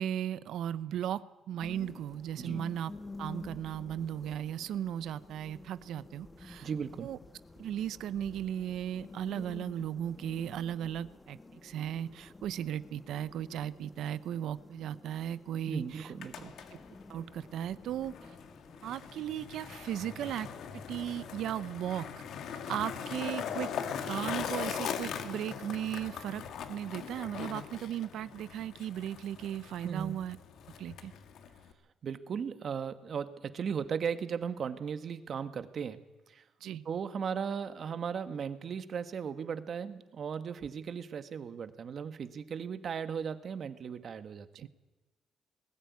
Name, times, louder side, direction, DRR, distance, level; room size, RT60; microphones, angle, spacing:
voice 1, 0.0-2.9 3.2-6.7 7.0-7.2 7.6-16.1 17.1-18.4 18.8-20.5 20.9-23.7 24.1-26.4 26.7-30.4 30.8-31.1 36.6-36.8 44.6-44.7, right 10 dB, 80° right, 16 dB, 0.7 m, -36 dB
sound 1, 1.6-21.3, left 2 dB, 20° left, 1.1 m, -51 dB
voice 2, 6.6-7.1 15.7-16.5 29.8-30.2 32.0-36.0 36.3-36.4 36.8-44.7, right 7 dB, 55° right, 11 dB, 1.5 m, -37 dB
Skateboard, 16.0-31.7, left 7 dB, 75° left, 2.0 m, -41 dB
21.0 x 14.0 x 9.6 m, 1.1 s
cardioid pair, 90°, 0 cm